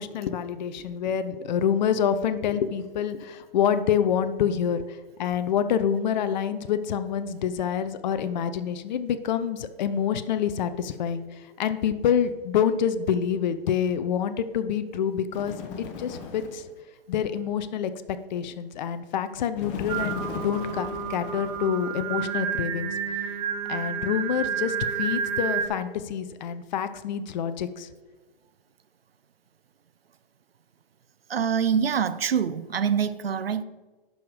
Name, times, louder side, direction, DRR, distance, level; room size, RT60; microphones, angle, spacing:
voice 1, 0.0-16.7 17.1-17.9 18.3-23.0 23.7-27.9, left 8 dB, 50° left, 0.6 m, -27 dB
Bird, 15.3-16.7 19.6-22.1, left 6 dB, 30° left, 1.1 m, -38 dB
Singing, 19.9-25.7, right 7 dB, 40° right, 1.0 m, -30 dB
voice 2, 31.3-33.6, right 7 dB, 80° right, 0.6 m, -25 dB
11.5 x 5.0 x 5.0 m
figure-of-eight pair, 120°, 29 cm